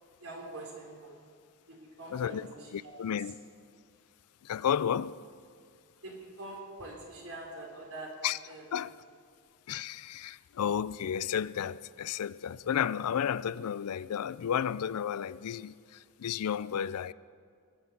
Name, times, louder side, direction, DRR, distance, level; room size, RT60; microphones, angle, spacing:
voice 1, 0.2-1.2 1.7-3.3 6.0-8.2 8.5-8.6, right 2 dB, 75° right, 3.6 m, -44 dB
voice 2, 2.1-2.5 2.7-3.3 4.4-5.2 8.2-8.4 8.7-8.9 9.7-17.1, left 8 dB, 90° left, 0.4 m, -32 dB
21.0 x 7.8 x 7.0 m
head